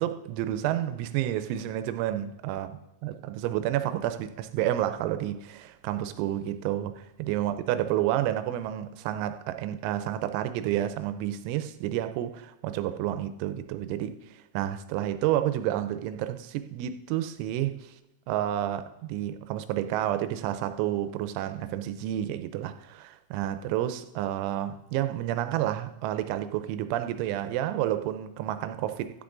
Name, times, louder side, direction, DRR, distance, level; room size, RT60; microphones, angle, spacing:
voice 1, 0.0-2.7 3.0-6.9 7.2-17.9 18.3-29.2, right 12 dB, 85° right, 3.0 m, -30 dB
10.5 x 5.9 x 2.5 m
omnidirectional pair, 5.3 m